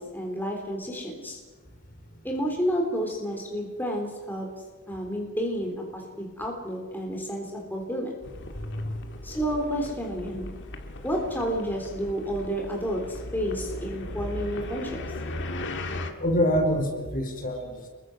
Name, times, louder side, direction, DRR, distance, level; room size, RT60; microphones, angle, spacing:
voice 1, 0.0-1.4 2.2-4.5 4.9-8.1 9.2-10.5 11.0-15.0, equal, 10° left, 0 dB, 3.9 m, -30 dB
sound 1, 8.2-16.1, left 1 dB, 55° left, 2.1 m, -37 dB
voice 2, 16.2-17.9, equal, 40° left, 3 dB, 4.9 m, -26 dB
27.5 x 23.0 x 6.3 m, 1.3 s
head